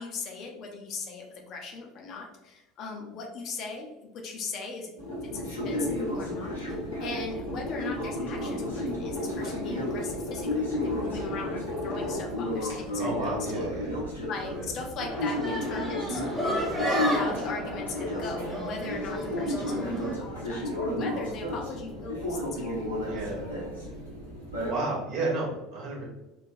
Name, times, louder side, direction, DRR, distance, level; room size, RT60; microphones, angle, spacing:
voice 1, 0.0-4.9 5.2-13.1 13.5-13.6 14.2-16.8 17.1-22.7, left 4 dB, 45° left, 1 dB, 0.6 m, -39 dB
sound 1, 5.0-12.7, left 1 dB, 75° left, 1.0 m, -36 dB
sound 2, 5.2-24.7, left 1 dB, 90° right, 0.7 m, -33 dB
voice 2, 9.5-9.9 13.0-14.0 14.5-14.7 23.0-23.5 24.7-26.0, right 2 dB, 55° right, -3 dB, 1.0 m, -32 dB
sound 3, 15.1-20.2, equal, 15° right, 0.9 m, -32 dB
3.1 x 2.3 x 2.6 m, 0.99 s
figure-of-eight pair, 70°, 0 cm